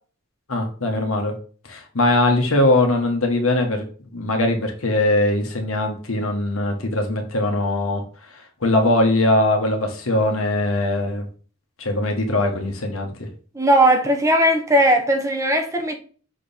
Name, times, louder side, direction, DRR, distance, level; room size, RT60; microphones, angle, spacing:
voice 1, 0.5-1.3 1.7-3.8 4.1-8.0 8.6-11.3 11.8-13.1, left 1 dB, 70° left, 1.4 m, -21 dB
voice 2, 13.5-16.0, right 1 dB, 15° right, 0.8 m, -18 dB
6.5 x 4.4 x 3.5 m
head